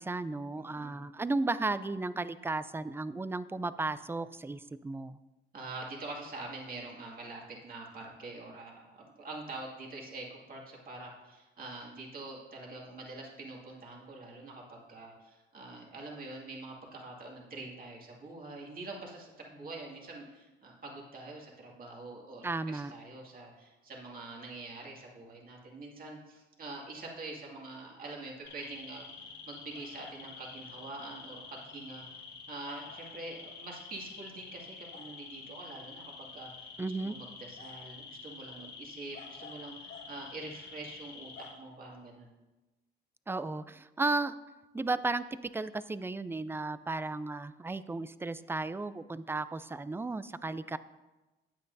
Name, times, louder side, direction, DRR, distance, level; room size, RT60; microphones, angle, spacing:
voice 1, 0.0-5.2 22.4-22.9 36.8-37.2 43.3-44.3 44.7-45.2 45.5-50.8, right 3 dB, 10° right, 14 dB, 0.4 m, -34 dB
voice 2, 0.6-1.0 5.5-32.0 32.5-36.7 37.0-42.3, right 2 dB, 45° right, -2 dB, 2.2 m, -45 dB
sound 1, 28.5-41.5, left 5 dB, 75° left, 3.1 m, -48 dB
15.0 x 8.8 x 2.7 m, 1.1 s
cardioid pair, 90°, 20 cm